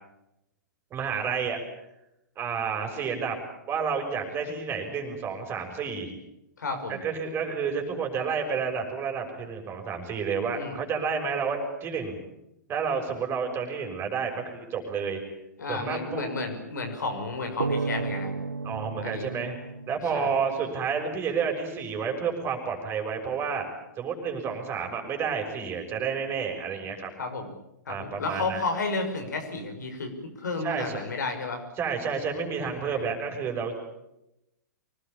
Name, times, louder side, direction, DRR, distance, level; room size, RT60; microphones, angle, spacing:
voice 1, 0.9-1.6 2.4-3.4 3.7-6.1 6.9-12.2 12.7-15.2 15.7-16.3 18.6-19.6 19.9-23.7 24.0-27.1 27.9-28.6 30.6-31.0 31.8-33.8, right 6 dB, 25° right, 3 dB, 6.5 m, -30 dB
voice 2, 6.6-7.0 10.5-10.8 15.6-18.3 19.0-19.3 20.1-20.3 27.2-27.5 27.9-31.6 32.8-33.0, left 3 dB, 70° left, 5 dB, 5.8 m, -32 dB
sound 1, 17.6-21.0, right 4 dB, 85° right, 0.8 m, -33 dB
25.0 x 20.0 x 8.8 m, 0.88 s
figure-of-eight pair, 110°, 10 cm